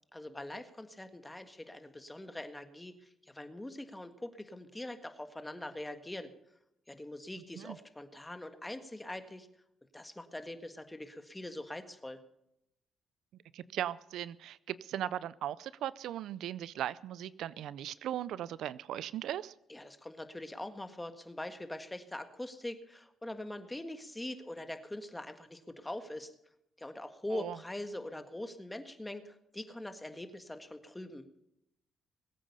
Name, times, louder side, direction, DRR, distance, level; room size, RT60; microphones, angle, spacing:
voice 1, 0.1-6.3 6.9-9.5 9.9-12.2 19.7-26.3 26.8-31.2, left 1 dB, 10° left, 8 dB, 1.6 m, -43 dB
voice 2, 13.5-19.5 27.3-27.6, right 11 dB, 80° right, 19 dB, 0.4 m, -38 dB
21.0 x 8.9 x 5.5 m, 0.81 s
cardioid pair, 90°, 0 cm